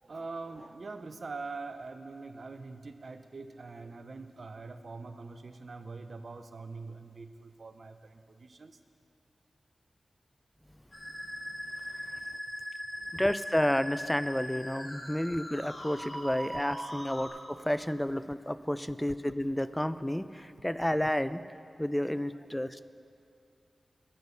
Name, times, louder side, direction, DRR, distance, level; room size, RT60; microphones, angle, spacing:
voice 1, 0.0-8.8, right 3 dB, 65° right, 10 dB, 0.6 m, -43 dB
Musical instrument, 10.9-17.3, equal, 40° left, 3.2 m, -40 dB
voice 2, 11.9-12.2 13.1-21.4 21.8-22.8, left 1 dB, 10° left, 14 dB, 0.4 m, -31 dB
9.8 x 9.1 x 6.9 m, 2.6 s
cardioid pair, 45°, 0 cm